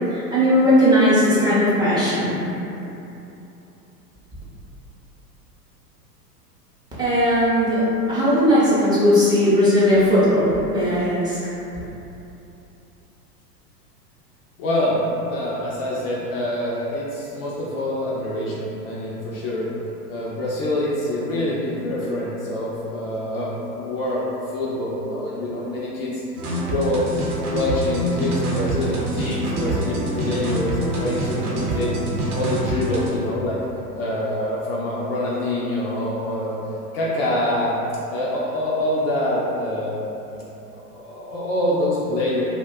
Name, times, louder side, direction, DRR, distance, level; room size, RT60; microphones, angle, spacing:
voice 1, 0.1-2.4 7.0-11.5, equal, 10° right, -11 dB, 0.5 m, -18 dB
voice 2, 14.6-19.7 20.1-26.2 26.6-27.1 27.5-31.9 32.3-33.6 34.0-36.6 36.9-37.8 38.1-42.4, left 1 dB, 40° left, -6 dB, 0.4 m, -25 dB
sound 1, 26.4-33.1, right 1 dB, 65° right, 0.8 m, -25 dB
2.5 x 2.1 x 3.4 m, 2.9 s
hypercardioid pair, 95°, 48 cm